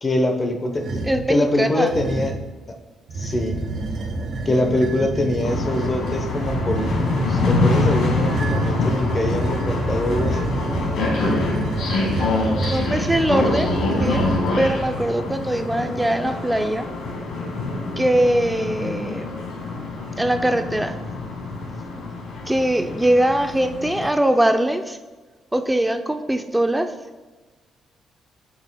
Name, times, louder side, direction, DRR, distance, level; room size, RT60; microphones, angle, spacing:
voice 1, 0.0-1.0 1.3-2.4 3.1-3.6 4.4-10.5, left 1 dB, 30° left, 4 dB, 0.7 m, -23 dB
sound 1, 0.7-1.3 1.9-2.5 3.1-15.1, right 2 dB, 60° right, 0.8 m, -28 dB
voice 2, 1.0-1.9 12.2-14.3 14.6-16.9 18.0-19.3 20.2-20.9 22.5-25.0 25.5-26.9, right 1 dB, 10° right, 7 dB, 0.4 m, -21 dB
sound 2, 5.4-24.1, left 3 dB, 80° left, 1.4 m, -25 dB
7.1 x 6.3 x 2.2 m, 1.3 s
cardioid pair, 90°, 0 cm